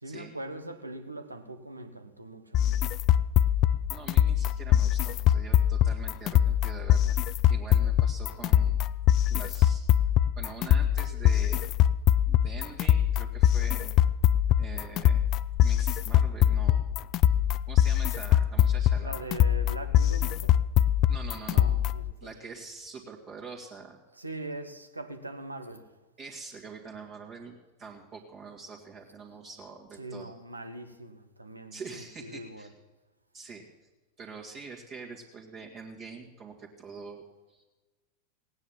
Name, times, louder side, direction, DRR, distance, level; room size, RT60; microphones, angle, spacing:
voice 1, 0.0-2.9 17.4-17.5 19.0-20.6 21.5-22.4 24.1-25.9 29.9-32.7, right 1 dB, 85° right, 1.3 m, -41 dB
sound 1, 2.5-22.1, left 11 dB, 35° left, 0.4 m, -23 dB
voice 2, 3.9-8.8 9.3-9.9 10.4-11.6 12.2-13.9 14.6-15.2 15.6-16.9 17.2-17.3 17.7-19.2 21.1-21.8 22.2-24.0 26.2-30.3 31.7-32.7 33.3-33.9 34.2-37.6, right 4 dB, 30° right, 2.2 m, -45 dB
17.5 x 9.7 x 7.3 m
figure-of-eight pair, 90°, 0 cm